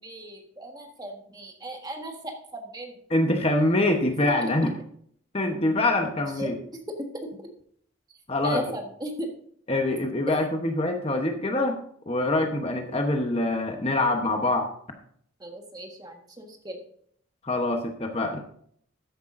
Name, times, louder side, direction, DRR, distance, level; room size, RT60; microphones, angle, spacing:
voice 1, 0.0-3.0 4.2-4.3 6.4-6.5 6.9-7.0 7.4-7.5 8.4-9.3 10.3-10.4 15.4-16.8, right 1 dB, 20° right, 3 dB, 1.5 m, -37 dB
voice 2, 3.1-4.7 5.3-6.5 8.3-8.6 9.7-11.8 12.1-14.7 17.4-18.4, left 2 dB, 30° left, 4 dB, 1.0 m, -24 dB
13.5 x 9.9 x 2.6 m, 0.63 s
head